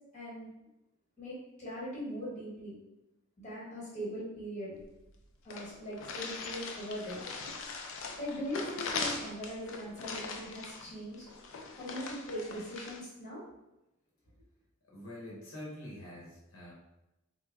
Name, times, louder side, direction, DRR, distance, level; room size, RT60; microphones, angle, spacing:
voice 1, 0.1-0.5 1.2-2.7 3.4-4.8 5.4-7.2 7.9-11.2 11.8-13.4, equal, 35° left, -5 dB, 1.2 m, -40 dB
sound 1, 4.8-4.9 5.1-5.2 5.5-13.0, left 4 dB, 70° left, 0.4 m, -40 dB
voice 2, 14.8-16.7, left 1 dB, 85° left, -4 dB, 0.9 m, -45 dB
3.4 x 2.1 x 3.2 m, 0.93 s
head